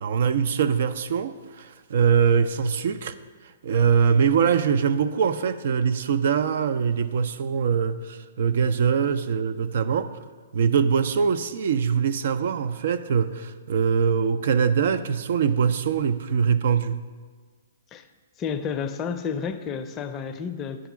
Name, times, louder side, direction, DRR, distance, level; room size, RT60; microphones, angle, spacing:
voice 1, 0.0-3.1 3.6-10.1 10.5-17.0, right 6 dB, 65° right, 11 dB, 0.4 m, -23 dB
voice 2, 18.4-20.9, left 6 dB, 25° left, 8 dB, 0.5 m, -31 dB
9.2 x 3.6 x 6.0 m, 1.5 s
hypercardioid pair, 125°, 0 cm